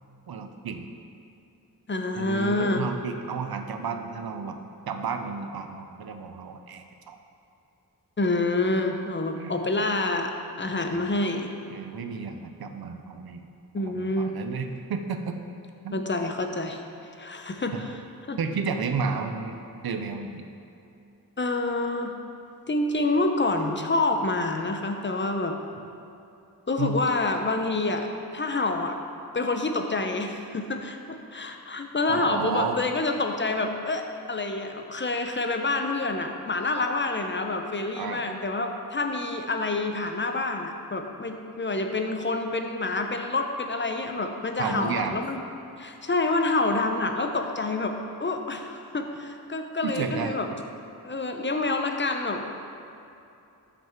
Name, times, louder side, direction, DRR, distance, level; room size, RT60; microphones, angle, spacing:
voice 1, 0.3-0.9 2.1-4.6 4.9-7.2 9.4-9.6 10.7-11.2 11.7-13.5 13.8-15.4 15.8-16.0 17.7-17.9 18.4-20.4 26.8-27.0 32.1-32.8 38.0-38.2 44.6-45.2 49.8-50.4, right 5 dB, 85° right, 6 dB, 0.6 m, -32 dB
voice 2, 1.9-2.9 8.2-10.3 10.6-11.5 13.7-14.3 15.9-18.0 18.3-18.4 21.4-22.2 22.7-25.6 26.7-28.1 28.3-29.0 29.3-34.0 34.3-45.4 45.8-50.5 51.0-52.4, left 2 dB, 30° left, 4 dB, 0.5 m, -27 dB
6.0 x 5.6 x 4.4 m, 2.8 s
wide cardioid pair, 70°, 36 cm